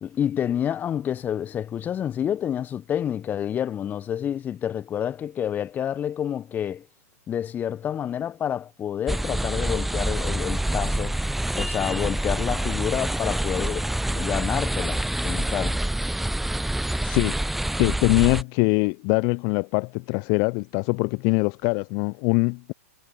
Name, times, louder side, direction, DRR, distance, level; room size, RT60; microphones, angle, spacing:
voice 1, 0.0-6.9 7.3-11.2 11.5-15.8, left 9 dB, 20° left, 1.4 m, -28 dB
sound 1, 9.1-18.4, right 1 dB, ahead, 0.4 m, -26 dB
voice 2, 17.0-17.4 17.8-22.7, left 35 dB, 35° left, 0.8 m, -23 dB
figure-of-eight pair, 110°, 9 cm